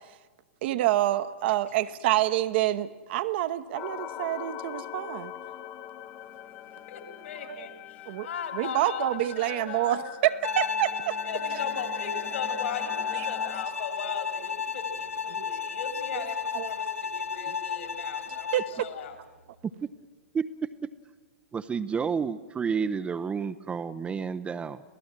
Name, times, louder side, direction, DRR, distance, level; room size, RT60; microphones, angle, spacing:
voice 1, 0.6-5.3 7.5-7.7 8.1-8.3 8.6-11.1 13.1-13.3 15.3-15.4 16.5-16.7 18.5-18.8, right 14 dB, 50° right, 10 dB, 1.0 m, -27 dB
sound 1, 3.7-13.7, left 11 dB, 30° left, 0.9 m, -42 dB
voice 2, 6.9-10.1 11.2-19.2, left 7 dB, 65° left, 6 dB, 3.8 m, -38 dB
Bowed string instrument, 10.4-18.8, left 6 dB, 85° left, 1.4 m, -33 dB
voice 3, 20.3-20.9 21.5-24.8, right 6 dB, 15° right, 11 dB, 0.6 m, -30 dB
27.0 x 17.5 x 7.6 m, 1.3 s
figure-of-eight pair, 105°, 7 cm